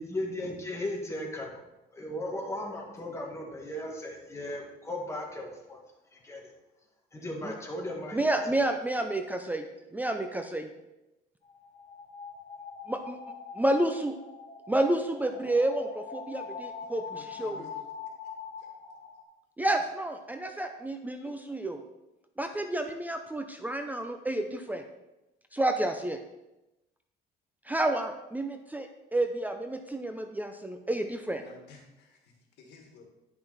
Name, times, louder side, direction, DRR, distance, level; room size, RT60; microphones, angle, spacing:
voice 1, 0.0-1.6 1.9-5.8 6.1-6.5 7.1-8.3, left 1 dB, 15° left, -1 dB, 1.9 m, -36 dB
voice 2, 8.1-9.6 9.9-10.7 12.9-13.2 13.5-14.1 14.7-17.6 19.6-21.8 22.4-24.8 25.5-26.2 27.7-31.4, right 1 dB, 10° right, 6 dB, 0.5 m, -30 dB
sound 1, 11.5-19.2, left 5 dB, 50° left, 1.2 m, -43 dB
voice 3, 17.1-17.7 21.2-21.3 31.4-33.0, left 5 dB, 85° left, 2 dB, 1.8 m, -52 dB
9.8 x 5.9 x 4.1 m, 0.97 s
cardioid pair, 110°, 17 cm